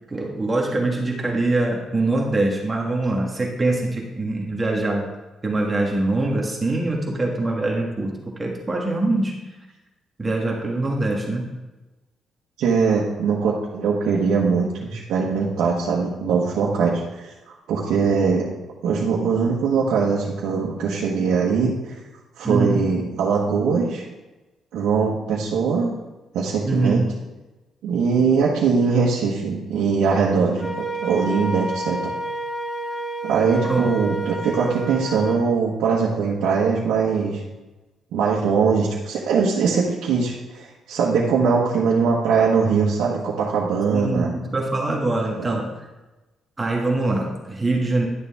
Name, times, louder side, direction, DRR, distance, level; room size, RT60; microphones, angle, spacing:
voice 1, 0.1-5.1 5.4-9.4 10.2-11.5 22.4-22.9 26.6-27.0 33.6-33.9 43.9-45.8 46.6-48.0, right 2 dB, 20° right, -1 dB, 1.6 m, -23 dB
voice 2, 12.6-17.3 17.7-18.4 18.8-21.7 22.4-24.0 24.7-25.9 26.3-27.0 27.8-30.7 31.0-32.1 33.2-37.4 38.1-44.3 45.4-45.5, right 5 dB, 80° right, -5 dB, 1.3 m, -21 dB
Wind instrument woodwind instrument, 30.6-35.4, right 2 dB, 35° left, 1.8 m, -29 dB
11.0 x 6.8 x 3.6 m, 1.1 s
cardioid pair, 90°, 0 cm